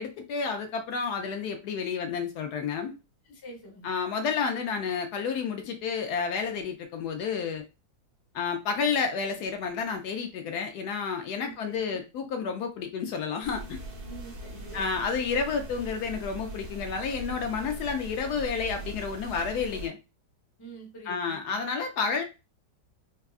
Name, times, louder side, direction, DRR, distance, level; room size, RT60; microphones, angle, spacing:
voice 1, 0.0-2.9 3.8-7.6 8.3-13.8 14.7-20.0 21.1-22.2, left 5 dB, 70° left, 1.1 m, -30 dB
voice 2, 3.3-3.9 11.4-12.0 14.1-15.0 20.6-21.6, right 2 dB, 25° left, 0.5 m, -47 dB
sound 1, 13.4-19.9, right 1 dB, 55° right, 0.8 m, -41 dB
3.6 x 2.2 x 2.3 m
omnidirectional pair, 1.9 m